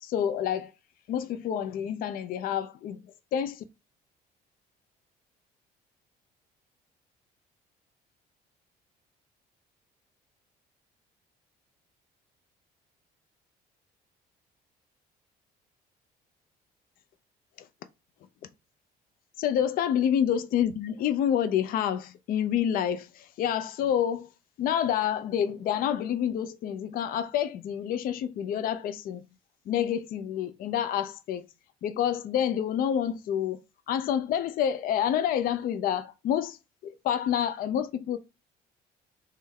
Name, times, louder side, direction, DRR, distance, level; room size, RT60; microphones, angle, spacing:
voice 1, 0.0-0.7 1.1-3.0 3.3-3.6 17.6-17.7 19.4-24.3 24.6-29.2 29.7-31.4 31.8-33.6 33.9-36.6 36.8-38.2, left 9 dB, 60° left, 0.4 m, -28 dB
3.2 x 2.1 x 3.4 m
cardioid pair, 110°, 17 cm